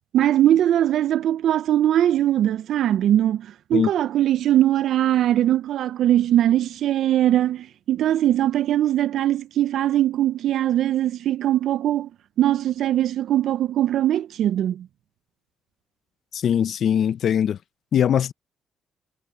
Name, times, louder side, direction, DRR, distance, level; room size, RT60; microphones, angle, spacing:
voice 1, 0.1-12.1 12.4-14.9, right 12 dB, 75° right, 0.4 m, -21 dB
voice 2, 16.3-17.6 17.9-18.3, left 9 dB, 65° left, 0.6 m, -21 dB
cardioid pair, 90°, 0 cm